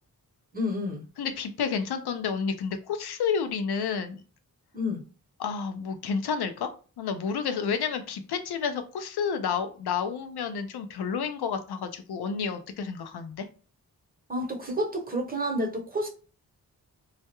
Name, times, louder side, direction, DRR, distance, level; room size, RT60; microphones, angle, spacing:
voice 1, 0.5-1.0 4.7-5.0 14.3-16.1, equal, 25° right, 0.8 m, -29 dB
voice 2, 1.2-4.2 5.4-6.7 7.0-13.5, left 6 dB, 85° left, 0.5 m, -30 dB
2.3 x 2.0 x 2.8 m
cardioid pair, 45°, 38 cm